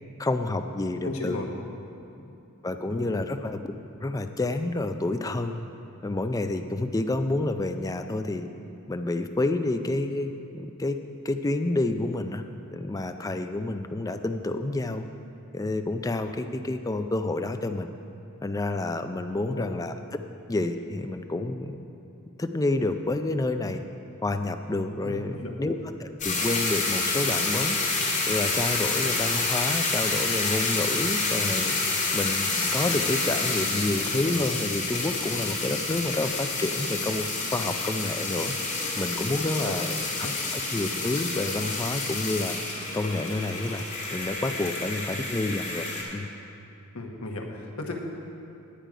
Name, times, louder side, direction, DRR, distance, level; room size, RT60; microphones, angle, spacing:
voice 1, 0.2-1.5 2.6-3.7 4.0-5.6 6.0-8.5 8.9-11.0 11.2-12.4 12.7-15.0 15.5-17.9 18.4-19.9 20.5-21.8 22.4-23.8 24.2-27.8 28.3-31.8 32.1-38.5 39.0-39.9 40.5-42.5 42.9-43.8 44.1-45.9 46.1-46.3, left 2 dB, 15° left, 7 dB, 0.4 m, -29 dB
voice 2, 1.0-1.5 2.2-2.3 2.9-3.1 19.5-19.7 25.0-25.5 39.6-39.8 40.2-40.3 46.9-47.9, left 2 dB, 75° left, 1 dB, 1.2 m, -35 dB
sound 1, 26.2-46.0, left 3 dB, 35° left, 2.2 m, -28 dB
10.0 x 9.0 x 5.0 m, 2.8 s
head